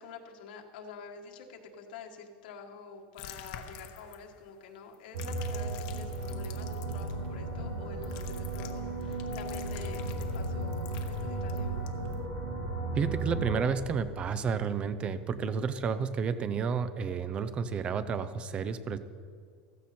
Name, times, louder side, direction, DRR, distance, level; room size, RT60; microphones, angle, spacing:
voice 1, 0.0-11.8, left 5 dB, 85° left, 2 dB, 1.7 m, -47 dB
sound 1, 3.1-4.5 4.9-7.2 8.0-12.1, left 10 dB, 55° left, 1.1 m, -48 dB
sound 2, 5.1-13.7, right 2 dB, 70° right, 2.2 m, -35 dB
voice 2, 12.9-19.0, right 6 dB, 20° right, 13 dB, 0.6 m, -31 dB
14.5 x 14.5 x 4.3 m, 2.1 s
supercardioid pair, 170°, 5 cm